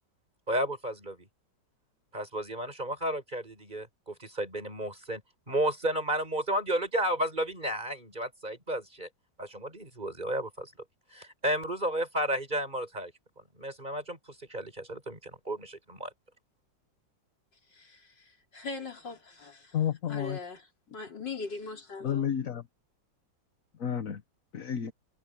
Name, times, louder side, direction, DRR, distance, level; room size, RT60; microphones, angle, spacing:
voice 1, 0.5-1.3 2.1-5.2 5.5-9.1 9.4-10.7 11.1-13.1 13.6-16.1, right 1 dB, 25° right, 5.8 m, -32 dB
voice 2, 17.7-19.8 20.1-20.6 20.9-22.3, left 4 dB, 80° left, 4.4 m, -40 dB
voice 3, 19.7-20.4 22.0-22.7 23.8-24.2 24.5-24.9, left 9 dB, 50° left, 1.5 m, -31 dB
omnidirectional pair, 1.9 m